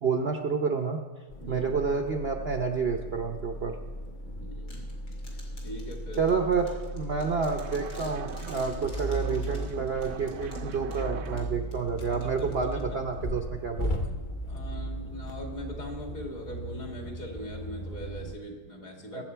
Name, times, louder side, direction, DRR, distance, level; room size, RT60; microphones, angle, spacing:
voice 1, 0.0-1.0 1.5-3.8 6.2-14.0 19.1-19.2, right 5 dB, 50° right, 4 dB, 0.8 m, -29 dB
sound 1, 1.3-18.4, equal, 35° left, 0.9 m, -37 dB
voice 2, 1.4-1.7 4.4-4.9 5.6-6.2 12.1-13.0 14.4-19.2, equal, 55° left, 1 dB, 2.5 m, -41 dB
sound 2, 4.7-13.1, left 2 dB, 80° left, 3.0 m, -53 dB
sound 3, 6.9-11.7, right 9 dB, 70° right, 1.1 m, -42 dB
21.0 x 7.9 x 4.5 m, 1.4 s
omnidirectional pair, 1.8 m